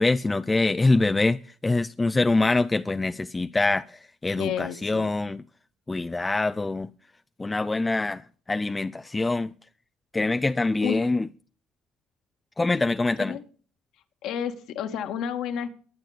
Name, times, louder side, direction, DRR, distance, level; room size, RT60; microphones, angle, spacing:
voice 1, 0.0-5.4 5.9-6.9 7.4-9.5 10.1-11.3 12.6-13.4, left 2 dB, 20° left, 0.6 m, -24 dB
voice 2, 4.4-5.1 10.8-11.0 13.2-13.4 14.2-15.7, left 8 dB, 60° left, 1.9 m, -30 dB
23.0 x 9.0 x 3.4 m
figure-of-eight pair, 55°, 0 cm